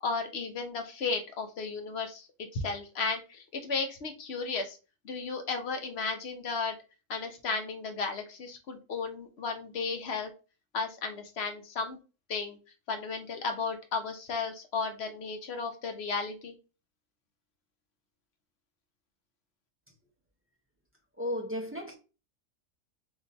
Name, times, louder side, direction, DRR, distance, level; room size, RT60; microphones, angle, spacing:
voice 1, 0.0-4.8 5.0-6.7 7.1-10.3 10.7-12.0 12.3-12.6 12.9-16.5, left 4 dB, 60° left, 0.8 m, -34 dB
voice 2, 21.2-22.0, left 1 dB, 15° right, 0.4 m, -34 dB
2.8 x 2.5 x 3.9 m
omnidirectional pair, 1.4 m